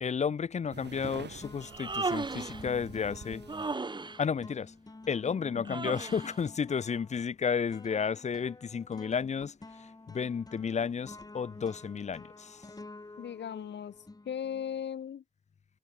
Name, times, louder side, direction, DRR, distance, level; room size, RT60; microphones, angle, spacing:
voice 1, 0.0-3.4 4.2-4.7 5.1-9.5 10.1-12.6, left 6 dB, 40° left, 0.5 m, -32 dB
sound 1, 0.6-1.1 1.4-14.8, left 2 dB, 20° left, 2.9 m, -50 dB
sound 2, 0.7-3.7, right 7 dB, 75° right, 2.6 m, -47 dB
Human voice, 1.6-2.7 3.5-4.2 5.6-6.3, right 3 dB, 25° right, 1.2 m, -35 dB
voice 2, 5.5-6.0 13.2-13.9 14.2-15.2, left 8 dB, 85° left, 1.2 m, -38 dB
wide cardioid pair, 130°, 18 cm